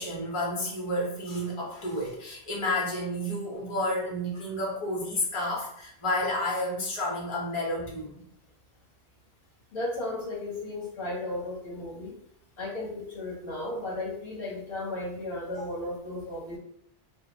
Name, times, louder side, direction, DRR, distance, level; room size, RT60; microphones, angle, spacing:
voice 1, 0.0-8.2 15.5-15.6, left 1 dB, 30° left, -3 dB, 1.0 m, -31 dB
voice 2, 9.7-12.1 12.6-16.6, left 2 dB, 60° left, -4 dB, 1.1 m, -35 dB
2.8 x 2.3 x 3.8 m, 0.70 s
omnidirectional pair, 1.1 m